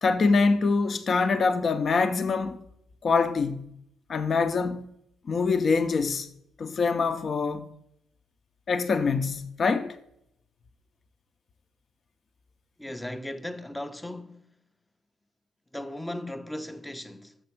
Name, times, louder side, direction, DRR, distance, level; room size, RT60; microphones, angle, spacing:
voice 1, 0.0-2.6 3.0-3.7 4.1-4.8 5.3-6.3 6.6-7.7 8.7-10.0, left 4 dB, 45° left, 0.7 m, -24 dB
voice 2, 12.8-14.6 15.7-17.4, left 1 dB, 10° left, 0.7 m, -37 dB
6.6 x 6.5 x 5.9 m
cardioid pair, 90°, 0 cm